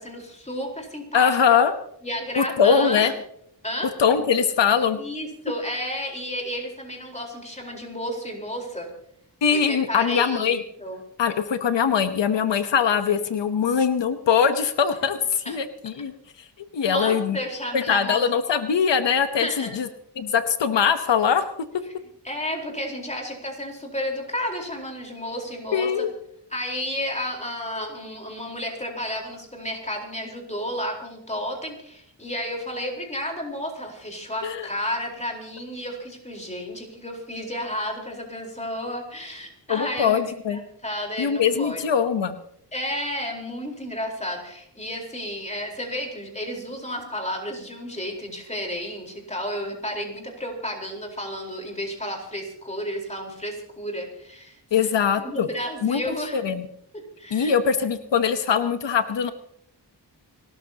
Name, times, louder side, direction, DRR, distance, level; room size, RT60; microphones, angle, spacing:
voice 1, 0.0-1.4 2.0-3.1 3.6-3.9 4.9-8.9 9.5-11.0 15.4-15.6 16.8-18.2 19.4-19.8 22.2-26.1 26.5-40.2 40.5-41.8 42.7-54.9 55.2-56.4 57.2-57.5, equal, 15° left, 1 dB, 4.2 m, -32 dB
voice 2, 1.1-1.7 2.4-3.1 4.0-5.0 9.4-10.6 11.2-16.1 16.7-17.4 17.7-19.9 20.2-21.4 25.7-26.1 34.4-34.7 39.7-40.6 41.2-42.4 54.7-55.5 55.8-56.7 57.3-59.3, left 7 dB, 85° left, 10 dB, 1.0 m, -22 dB
29.5 x 13.5 x 2.9 m, 0.70 s
wide cardioid pair, 115°, 42 cm